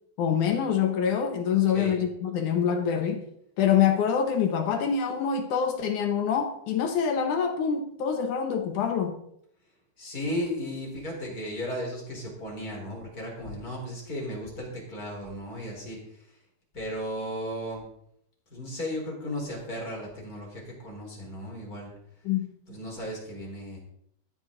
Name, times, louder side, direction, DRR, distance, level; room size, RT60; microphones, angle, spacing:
voice 1, 0.2-3.2 3.6-9.2 22.3-22.5, left 7 dB, 70° left, 2.0 m, -25 dB
voice 2, 10.0-16.0 16.7-17.8 18.5-21.9 22.7-23.8, equal, 25° left, 3.9 m, -35 dB
13.0 x 12.5 x 3.8 m
omnidirectional pair, 4.6 m